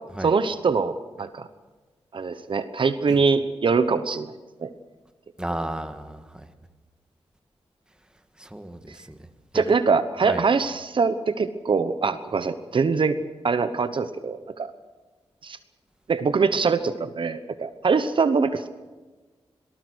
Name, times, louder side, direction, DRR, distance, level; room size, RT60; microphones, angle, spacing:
voice 1, 0.2-1.5 2.1-4.3 4.6-4.7 9.5-13.2 13.4-14.7 15.4-15.6 16.1-18.7, right 5 dB, 55° right, 11 dB, 1.1 m, -23 dB
voice 2, 5.4-6.5 8.4-9.2 9.5-9.6 10.2-10.4, right 1 dB, 10° right, 8 dB, 1.6 m, -33 dB
26.5 x 18.5 x 6.4 m, 1.3 s
wide cardioid pair, 110°, 10 cm